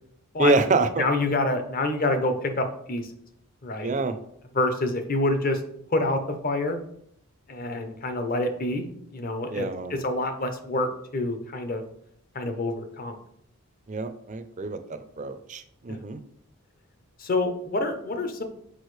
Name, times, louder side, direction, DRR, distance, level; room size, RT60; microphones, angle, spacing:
voice 1, 0.4-1.1 3.8-4.2 9.5-10.0 13.9-16.2, right 3 dB, 35° right, 10 dB, 0.4 m, -26 dB
voice 2, 1.0-3.1 3.6-3.9 4.5-5.6 5.9-6.8 7.5-11.8 12.3-13.2 15.9-16.0 17.2-18.4, left 2 dB, 40° left, 7 dB, 0.7 m, -27 dB
6.3 x 4.9 x 3.2 m, 0.71 s
head